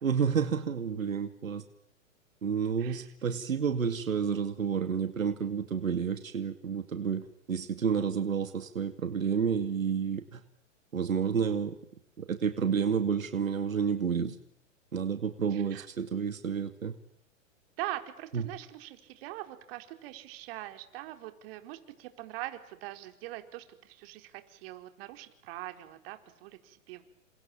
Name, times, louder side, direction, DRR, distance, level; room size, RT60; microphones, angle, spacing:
voice 1, 0.0-1.6 2.4-10.4 10.9-11.8 12.2-14.4 14.9-16.9 18.3-18.4, right 6 dB, 85° right, 9 dB, 2.4 m, -30 dB
voice 2, 15.5-15.9 17.8-27.0, right 16 dB, 45° right, 8 dB, 4.3 m, -42 dB
30.0 x 27.5 x 7.4 m, 0.74 s
hypercardioid pair, 120°, 39 cm